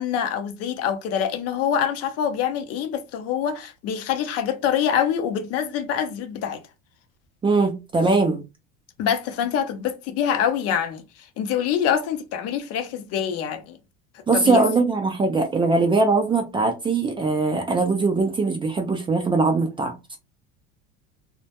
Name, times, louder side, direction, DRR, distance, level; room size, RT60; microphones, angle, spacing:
voice 1, 0.0-6.6 9.0-11.0 11.4-13.8 14.3-14.6, left 8 dB, 50° left, 0.6 m, -25 dB
voice 2, 7.4-8.4 14.3-19.9, right 3 dB, 15° right, 0.4 m, -21 dB
2.1 x 2.1 x 2.7 m
supercardioid pair, 120°, 31 cm